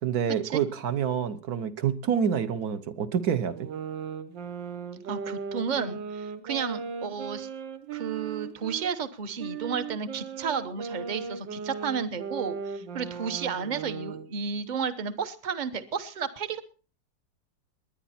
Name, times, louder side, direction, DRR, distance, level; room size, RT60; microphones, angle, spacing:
voice 1, 0.0-3.7, right 8 dB, 60° right, 1.3 m, -27 dB
sound 1, 3.5-8.9 9.4-14.3, right 6 dB, 80° right, 1.8 m, -37 dB
voice 2, 5.1-7.5 7.9-16.6, right 6 dB, 35° right, 0.8 m, -32 dB
20.5 x 10.0 x 4.2 m
omnidirectional pair, 2.0 m